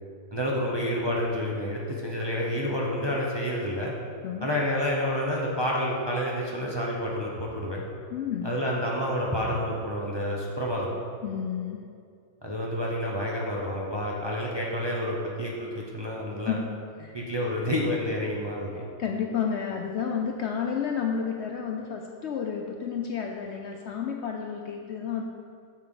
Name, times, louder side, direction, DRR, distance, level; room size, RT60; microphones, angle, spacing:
voice 1, 0.3-3.9 4.4-7.8 8.4-11.0 12.4-16.6 17.1-18.8, equal, 20° right, -4 dB, 0.7 m, -29 dB
voice 2, 8.1-8.5 11.2-11.8 16.5-16.7 17.0-17.2 19.0-25.2, left 7 dB, 65° left, 2 dB, 0.7 m, -31 dB
9.0 x 6.6 x 3.8 m, 2.3 s
omnidirectional pair, 1.5 m